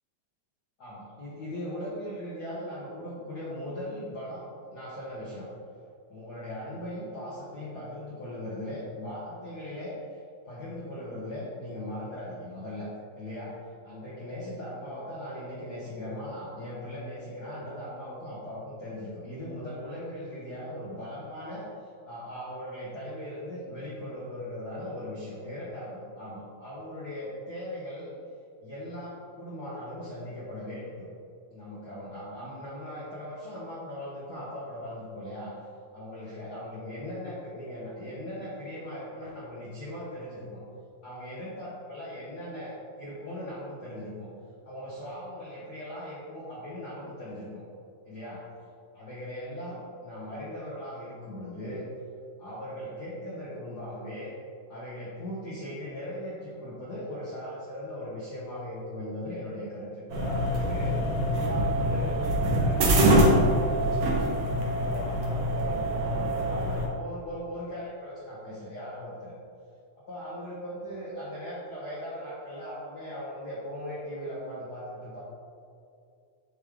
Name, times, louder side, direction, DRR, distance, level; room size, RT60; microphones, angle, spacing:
voice 1, 0.8-4.5 4.7-5.5 6.1-10.2 10.5-12.9 13.1-13.5 13.8-28.1 28.6-31.1 31.5-35.5 35.9-40.6 41.0-44.3 44.6-47.6 48.0-48.4 48.9-51.9 52.4-54.3 54.7-62.2 62.5-64.3 64.7-69.3 70.1-75.2, left 1 dB, 70° left, -8 dB, 0.9 m, -39 dB
sound 1, 60.1-66.9, right 1 dB, 70° right, 1.3 m, -24 dB
8.6 x 3.3 x 3.6 m, 2.4 s
omnidirectional pair, 3.4 m